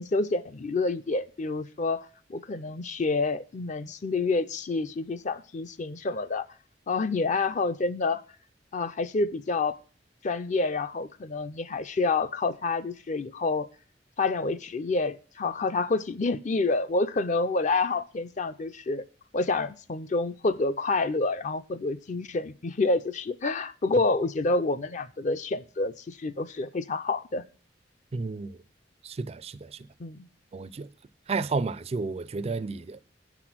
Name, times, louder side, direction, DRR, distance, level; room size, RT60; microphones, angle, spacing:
voice 1, 0.0-6.5 6.9-8.2 8.7-9.8 10.2-13.7 14.2-19.0 19.3-27.4 30.0-30.3, left 3 dB, 40° left, 0.5 m, -28 dB
voice 2, 28.1-28.6 29.0-29.9 30.5-30.9 31.3-33.0, right 4 dB, 35° right, 0.3 m, -32 dB
9.0 x 6.0 x 6.0 m
head